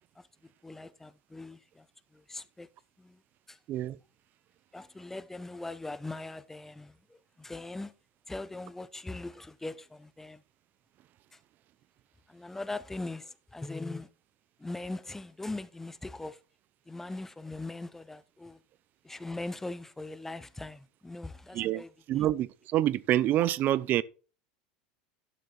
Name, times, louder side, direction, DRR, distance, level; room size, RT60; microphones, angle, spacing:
voice 1, 0.1-1.9 2.1-2.7 3.0-3.2 3.5-3.6 4.7-7.9 8.3-10.4 11.3-11.4 12.3-14.1 14.6-16.4 16.9-18.6 19.0-22.2, left 2 dB, 10° left, 0.8 m, -41 dB
voice 2, 22.1-24.0, right 13 dB, 45° right, 0.6 m, -27 dB
12.0 x 6.7 x 4.5 m
supercardioid pair, 115°, 4 cm